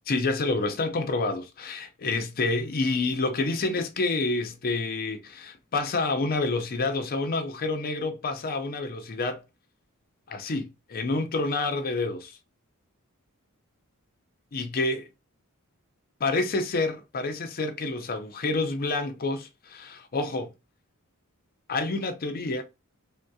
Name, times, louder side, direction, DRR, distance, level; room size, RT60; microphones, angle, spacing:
voice 1, 0.1-9.4 10.3-12.4 14.5-15.1 16.2-20.5 21.7-22.6, left 3 dB, 40° left, 0.5 m, -28 dB
3.6 x 2.7 x 2.2 m
head